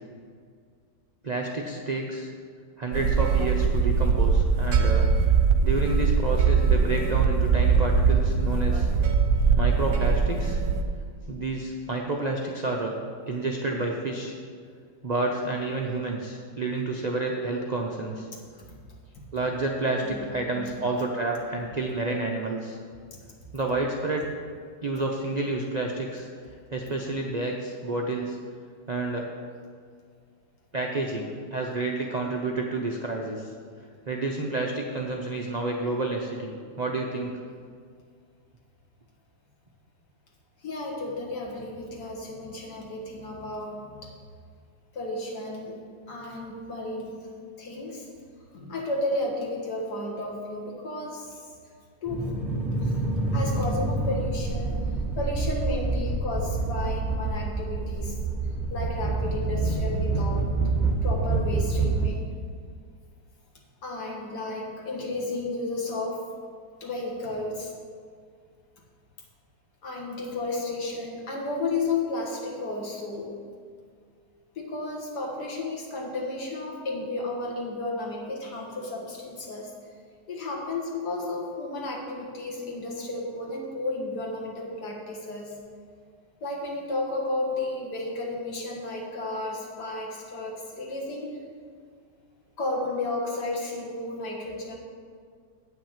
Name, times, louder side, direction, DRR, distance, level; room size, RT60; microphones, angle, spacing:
voice 1, 1.2-2.3 2.8-8.9 9.5-10.6 11.3-13.0 13.3-14.3 15.0-18.3 19.3-22.8 23.5-24.3 24.8-26.3 26.7-28.4 28.9-29.3 30.7-33.5 34.1-37.4, right 2 dB, 85° right, 0 dB, 0.3 m, -29 dB
sound 1, 2.9-10.8, right 5 dB, 60° right, 1.0 m, -22 dB
voice 2, 20.1-20.8 23.1-23.2 40.6-44.1 44.9-45.8 46.1-47.2 47.6-48.1 48.5-51.5 52.0-52.3 52.8-53.0 53.3-54.8 55.1-58.2 58.7-60.5 61.0-62.3 63.8-66.2 66.8-67.7 69.8-73.3 74.6-79.7 80.3-85.6 86.4-91.3 92.6-94.8, left 2 dB, 65° left, -1 dB, 2.1 m, -33 dB
sound 2, 52.1-62.1, right 3 dB, ahead, 0.5 m, -27 dB
8.5 x 5.9 x 7.3 m, 2.1 s
omnidirectional pair, 1.9 m